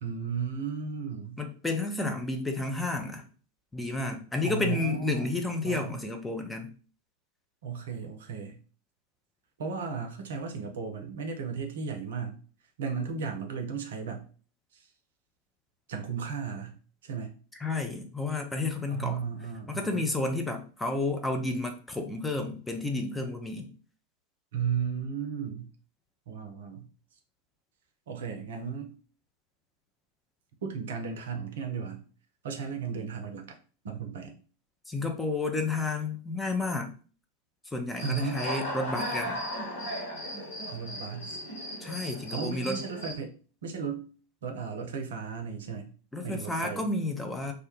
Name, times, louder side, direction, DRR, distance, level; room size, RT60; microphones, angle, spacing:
voice 1, 0.0-1.4 4.4-5.3 5.6-6.0 7.6-8.6 9.6-12.4 12.8-14.3 14.7-14.9 15.9-16.8 17.0-17.3 18.9-20.1 24.5-25.7 26.3-26.9 28.1-28.9 30.6-32.0 32.4-33.6 33.8-34.4 38.0-38.5 40.7-41.4 42.3-43.3 43.6-44.1 44.4-45.9 46.2-46.9, right 6 dB, 60° right, 4 dB, 0.5 m, -35 dB
voice 2, 1.4-3.2 3.7-6.7 17.6-19.2 19.7-23.7 34.9-36.9 37.7-39.4 41.8-42.8 46.1-47.5, left 2 dB, 5° left, 4 dB, 0.4 m, -31 dB
Human voice / Cricket, 38.0-43.1, equal, 65° left, 1.1 m, -36 dB
2.2 x 2.1 x 2.9 m, 0.39 s
figure-of-eight pair, 90°, 0 cm